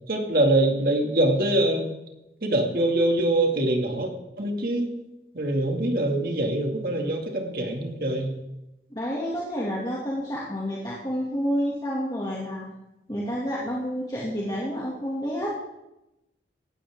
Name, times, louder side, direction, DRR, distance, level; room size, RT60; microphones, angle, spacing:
voice 1, 0.1-1.9 2.4-4.1 4.4-4.9 5.3-8.4, right 1 dB, 55° right, 2 dB, 2.4 m, -24 dB
voice 2, 8.9-12.7 13.1-15.6, equal, 20° left, -5 dB, 2.4 m, -29 dB
17.5 x 14.0 x 3.8 m, 0.92 s
head